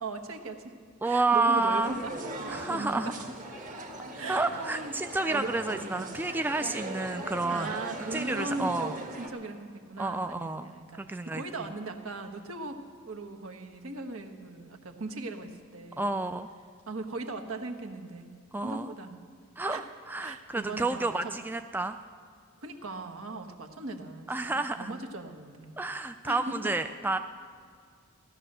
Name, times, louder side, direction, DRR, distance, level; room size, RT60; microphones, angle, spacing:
voice 1, 0.0-0.7 1.0-3.2 4.2-4.9 5.3-6.2 7.5-16.2 16.9-18.3 18.6-19.2 19.7-19.9 20.2-21.4 22.6-25.8 26.3-26.7, right 3 dB, 70° right, 4 dB, 1.4 m, -39 dB
voice 2, 1.0-2.0 2.5-3.3 4.3-9.0 10.0-10.7 11.0-11.4 16.0-16.5 18.5-18.9 19.6-19.8 20.1-22.0 24.3-24.9 25.8-27.2, right 3 dB, 10° right, 8 dB, 0.3 m, -30 dB
sound 1, 1.8-9.3, right 1 dB, 40° right, 1.8 m, -40 dB
16.5 x 11.5 x 6.7 m, 2.2 s
head